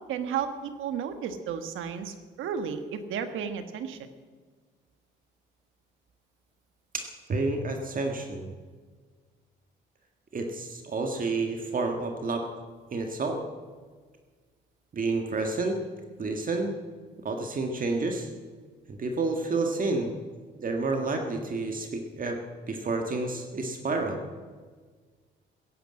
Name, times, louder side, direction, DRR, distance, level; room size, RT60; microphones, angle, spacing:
voice 1, 0.1-4.0, right 7 dB, 85° right, 9 dB, 1.4 m, -33 dB
voice 2, 6.9-8.5 10.3-12.4 12.9-13.4 14.9-15.8 16.2-16.7 17.2-18.3 19.0-20.1 20.6-22.4 22.7-24.2, right 3 dB, 45° right, 3 dB, 1.8 m, -29 dB
16.0 x 10.0 x 7.7 m, 1.5 s
cardioid pair, 90°, 20 cm